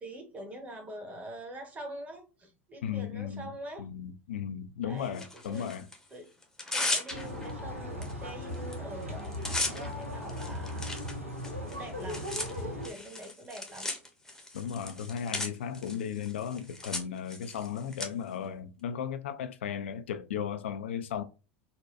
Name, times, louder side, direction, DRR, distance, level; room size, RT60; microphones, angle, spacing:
voice 1, 0.0-3.9 4.8-5.7 6.1-6.3 6.7-11.1 11.5-13.9, right 1 dB, 20° right, 1.1 m, -45 dB
voice 2, 2.8-3.5 3.8-5.9 14.5-21.2, left 8 dB, 65° left, 0.4 m, -35 dB
Tearing, 5.1-6.0 6.4-7.5 8.0-8.1 8.4-8.7 9.0-18.1, left 2 dB, 5° left, 0.8 m, -37 dB
sound 1, 7.1-12.9, left 1 dB, 80° right, 0.9 m, -38 dB
4.0 x 2.2 x 2.4 m
figure-of-eight pair, 80°, 7 cm